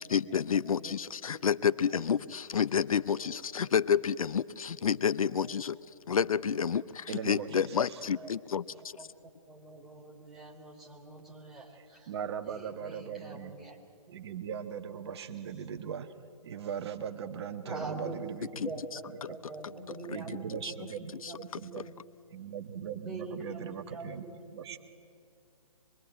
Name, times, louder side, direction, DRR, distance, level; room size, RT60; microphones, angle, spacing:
voice 1, 0.0-5.8 6.1-9.0 18.5-18.7 20.1-20.2 20.6-20.7 21.2-21.3, left 7 dB, 70° left, 17 dB, 0.7 m, -29 dB
voice 2, 3.0-3.3 5.4-5.6 8.2-8.3 8.7-9.1 9.5-12.1 12.5-13.8 17.7-21.4 21.7-21.9 22.9-24.5, right 2 dB, ahead, -3 dB, 3.5 m, -45 dB
voice 3, 7.1-8.0 11.7-13.6 14.1-16.1 16.4-18.5 19.3-19.4 20.1-21.9 22.3-24.3 24.5-24.8, right 8 dB, 45° right, 8 dB, 1.5 m, -39 dB
25.5 x 22.0 x 9.2 m, 2.2 s
hypercardioid pair, 140°, 19 cm